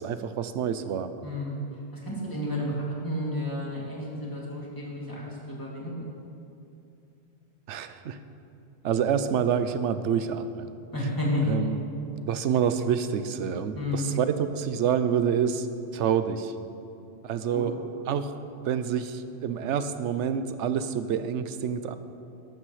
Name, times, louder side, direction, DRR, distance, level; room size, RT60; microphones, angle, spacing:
voice 1, 0.0-1.1 7.7-8.2 8.8-10.7 11.4-11.8 12.2-15.7 15.9-16.5 17.2-17.7 18.1-18.3 18.6-21.9, right 8 dB, 90° right, 11 dB, 0.9 m, -27 dB
voice 2, 1.2-1.6 1.9-5.9 10.9-11.6 13.7-14.2 17.5-17.7, left 1 dB, 15° left, -5 dB, 2.5 m, -31 dB
13.0 x 12.5 x 3.2 m, 2.7 s
omnidirectional pair, 1.2 m